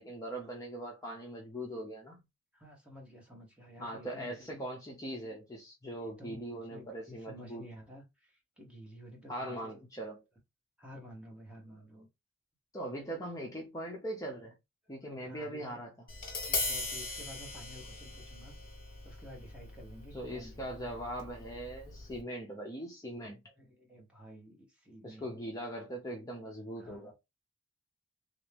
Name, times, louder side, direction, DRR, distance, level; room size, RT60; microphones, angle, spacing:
voice 1, 0.0-2.2 3.8-7.6 9.3-10.2 12.7-14.5 14.9-15.9 20.1-23.4 25.0-27.1, right 1 dB, 15° left, 0.6 m, -41 dB
voice 2, 2.5-4.6 5.9-9.9 10.8-12.1 15.0-15.8 16.5-18.6 19.0-21.0 23.5-25.3 26.8-27.1, equal, 5° right, 1.0 m, -52 dB
Tap, 16.1-22.2, left 2 dB, 40° left, 1.2 m, -40 dB
3.4 x 2.7 x 3.3 m
head